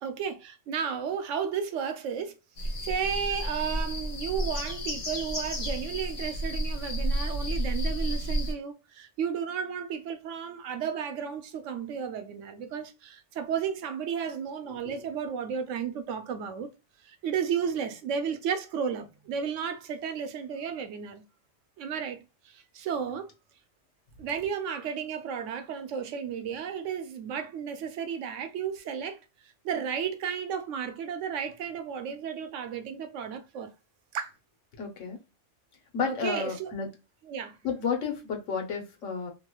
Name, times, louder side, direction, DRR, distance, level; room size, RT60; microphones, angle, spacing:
voice 1, 0.0-2.3 2.8-16.7 17.0-21.2 21.8-23.3 24.2-29.2 29.6-33.7 34.1-34.3 36.1-36.7 37.2-37.6, right 7 dB, 85° right, 0.9 m, -33 dB
sound 1, 2.6-8.5, equal, 70° left, 1.4 m, -31 dB
voice 2, 34.7-35.2 35.9-36.9 37.6-39.3, left 6 dB, 85° left, 1.3 m, -31 dB
3.0 x 3.0 x 2.3 m
omnidirectional pair, 1.2 m